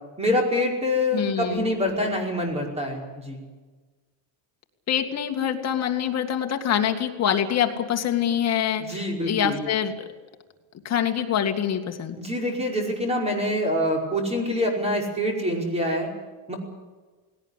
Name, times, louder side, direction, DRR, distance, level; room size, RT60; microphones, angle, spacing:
voice 1, 0.2-3.4 8.8-9.6 12.2-16.1 16.5-16.6, left 1 dB, 15° right, 1 dB, 5.2 m, -25 dB
voice 2, 1.1-1.7 4.9-10.1 10.8-12.2, left 9 dB, 35° left, 4 dB, 2.2 m, -25 dB
19.0 x 18.0 x 9.9 m, 1.3 s
cardioid pair, 155°, 45 cm